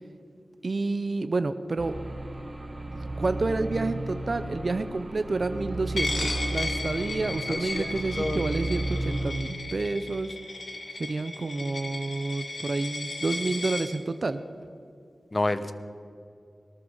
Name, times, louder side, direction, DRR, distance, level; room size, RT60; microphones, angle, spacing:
voice 1, 0.6-1.9 3.2-10.4 11.0-14.4, right 3 dB, 50° right, 10 dB, 0.6 m, -29 dB
sound 1, 1.8-9.3, right 1 dB, 35° right, 1.8 m, -33 dB
Coin (dropping), 6.0-13.9, left 2 dB, 70° left, 1.9 m, -35 dB
voice 2, 7.5-8.5 15.3-15.7, left 2 dB, 30° left, 12 dB, 0.8 m, -29 dB
19.0 x 13.0 x 5.5 m, 2.4 s
wide cardioid pair, 90°, 0 cm